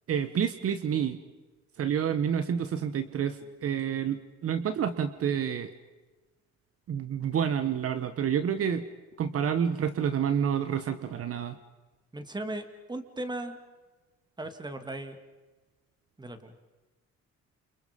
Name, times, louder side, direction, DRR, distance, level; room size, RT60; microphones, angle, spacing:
voice 1, 0.1-1.2 1.8-5.7 6.9-8.8 9.2-11.6, right 8 dB, 50° right, 10 dB, 1.4 m, -29 dB
voice 2, 12.1-13.6 14.4-15.2 16.2-16.5, right 1 dB, 15° right, 8 dB, 2.5 m, -37 dB
29.0 x 29.0 x 5.3 m, 1.2 s
cardioid pair, 125°, 29 cm